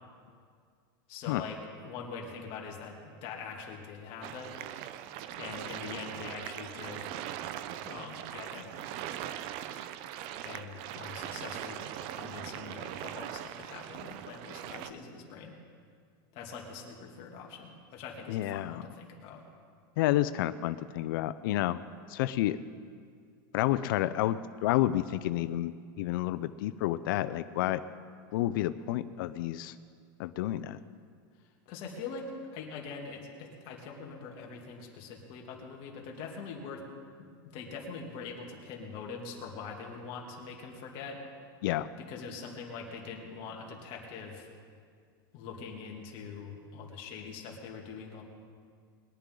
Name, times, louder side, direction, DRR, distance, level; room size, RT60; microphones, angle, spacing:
voice 1, 1.1-4.6 5.4-7.1 7.8-8.7 10.4-11.8 12.1-15.5 16.3-19.4 31.7-36.8 37.2-41.2 42.0-44.5 45.3-48.2, left 5 dB, 45° left, 0 dB, 2.5 m, -43 dB
sound 1, 4.2-14.9, right 11 dB, 50° right, 0.6 m, -40 dB
voice 2, 18.3-18.8 20.0-21.8 22.1-22.6 23.5-27.8 28.3-29.7 30.2-30.8 41.6-41.9, left 14 dB, 70° left, 13 dB, 0.5 m, -30 dB
21.5 x 11.5 x 3.9 m, 2.1 s
supercardioid pair, 140°, 12 cm